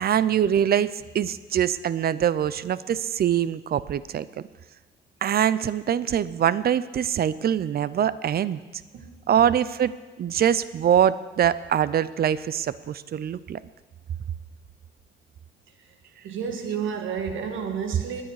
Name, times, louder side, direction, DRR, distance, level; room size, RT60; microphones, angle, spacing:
voice 1, 0.0-4.5 5.2-8.6 9.3-9.9 10.2-13.6, right 9 dB, 50° right, 17 dB, 0.6 m, -23 dB
voice 2, 16.2-18.2, right 7 dB, 75° right, 6 dB, 1.9 m, -31 dB
20.5 x 9.9 x 4.9 m, 1.2 s
cardioid pair, 90°, 20 cm